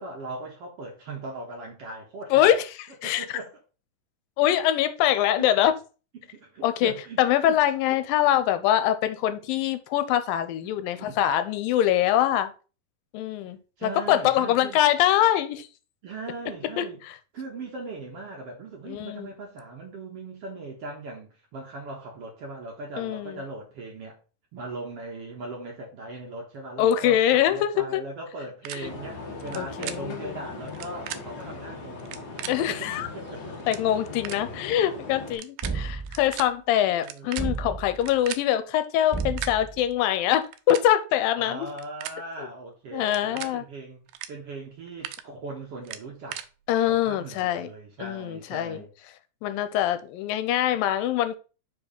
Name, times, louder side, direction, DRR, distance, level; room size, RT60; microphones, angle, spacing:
voice 1, 0.0-2.6 3.0-3.5 5.4-5.5 6.1-7.6 7.9-8.0 10.6-11.2 13.8-14.8 16.0-17.0 17.3-24.2 24.5-32.1 32.5-33.5 36.7-37.3 41.3-46.4 46.9-48.9, right 2 dB, 55° right, 1.8 m, -39 dB
voice 2, 2.3-2.6 3.0-3.3 4.4-5.7 6.6-6.9 7.2-12.5 13.1-15.7 16.8-16.9 18.9-19.3 23.0-23.4 26.8-28.0 28.7-28.9 29.6-30.4 32.5-33.1 33.7-41.7 42.9-43.6 46.7-47.7 48.0-48.8 49.4-51.4, left 11 dB, 80° left, 2.3 m, -24 dB
sound 1, 28.6-28.8 29.4-29.6 29.8-30.0 30.7-31.2 32.0-32.5 33.3-33.4 33.6-33.8 34.2-34.4 35.3-35.7 36.0-36.4 37.0-38.4 39.1-39.5 40.4-40.9 41.6-42.2 43.0-43.5 44.1-44.3 44.7-45.2 45.8-46.5, right 12 dB, 80° right, 2.0 m, -36 dB
sound 2, 28.8-35.3, left 3 dB, 60° left, 1.0 m, -39 dB
sound 3, 35.6-36.4 37.4-38.1 39.1-39.9, right 4 dB, 35° right, 0.4 m, -32 dB
5.4 x 4.7 x 5.2 m
omnidirectional pair, 4.1 m